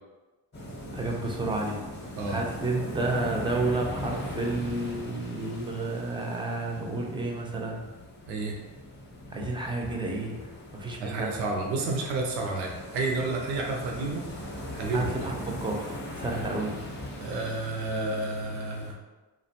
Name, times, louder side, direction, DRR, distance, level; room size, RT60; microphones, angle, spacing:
sound 1, 0.5-18.9, left 1 dB, 25° left, 0.7 m, -40 dB
voice 1, 0.9-1.8 2.3-7.9 9.3-11.3 14.9-16.9, right 2 dB, 10° right, 0 dB, 0.4 m, -31 dB
voice 2, 8.2-8.5 11.0-14.5 14.7-15.1 17.2-19.0, right 3 dB, 85° right, 0 dB, 0.6 m, -30 dB
2.4 x 2.2 x 2.7 m, 1.2 s
supercardioid pair, 75°, 44 cm